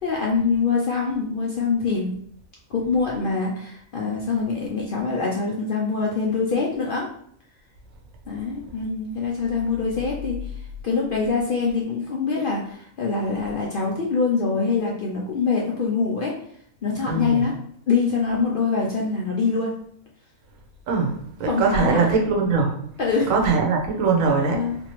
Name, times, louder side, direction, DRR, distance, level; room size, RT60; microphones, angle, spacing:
voice 1, 0.0-2.1 2.7-7.1 8.3-10.4 10.8-16.4 16.8-17.6 17.9-19.8 21.4-22.1 23.0-23.4 24.5-24.8, left 4 dB, 60° left, -2 dB, 0.5 m, -24 dB
voice 2, 17.1-17.4 20.9-21.1 21.4-22.7 23.3-24.6, right 4 dB, 75° right, 1 dB, 1.1 m, -21 dB
3.5 x 2.8 x 2.9 m, 0.63 s
omnidirectional pair, 1.4 m